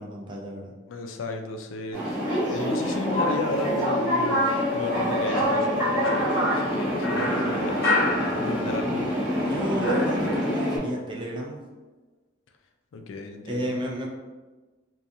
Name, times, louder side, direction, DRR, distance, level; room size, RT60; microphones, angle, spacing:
voice 1, 0.0-0.7 9.5-11.6 13.5-14.1, equal, 25° right, -1 dB, 0.4 m, -32 dB
voice 2, 0.9-8.1 8.4-9.3 12.9-13.8, left 3 dB, 85° left, 5 dB, 0.3 m, -34 dB
sound 1, 1.9-10.8, equal, 5° right, 1.0 m, -26 dB
sound 2, 6.0-9.1 9.3-10.8, left 2 dB, 65° left, 0.9 m, -29 dB
2.4 x 2.3 x 2.7 m, 1.2 s
head